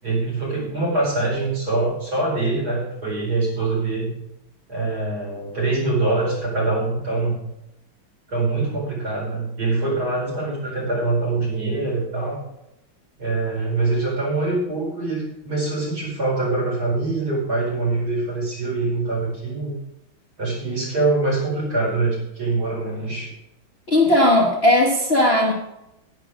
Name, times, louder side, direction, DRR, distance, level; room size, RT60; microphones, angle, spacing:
voice 1, 0.0-4.1 4.7-7.4 8.3-12.4 13.2-19.7 20.4-23.3, right 3 dB, 45° right, -4 dB, 5.2 m, -24 dB
voice 2, 23.9-25.5, left 1 dB, 35° left, -1 dB, 1.3 m, -17 dB
10.5 x 10.5 x 4.9 m, 0.87 s
omnidirectional pair, 2.3 m